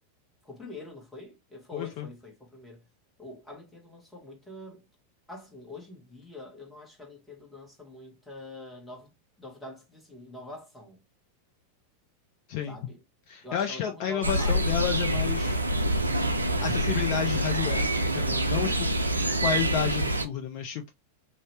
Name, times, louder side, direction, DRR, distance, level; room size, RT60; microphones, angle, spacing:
voice 1, 0.4-2.8 3.2-4.9 5.3-9.1 9.4-11.0 12.7-13.0 13.4-14.7, left 2 dB, 5° left, 1.1 m, -44 dB
voice 2, 1.7-2.1 12.5-12.8 13.3-15.6 16.6-17.9 18.1-18.9 19.4-20.9, left 9 dB, 50° left, 0.4 m, -31 dB
sound 1, 14.2-20.3, right 1 dB, 90° right, 0.3 m, -26 dB
2.6 x 2.0 x 3.1 m
figure-of-eight pair, 90°, 0 cm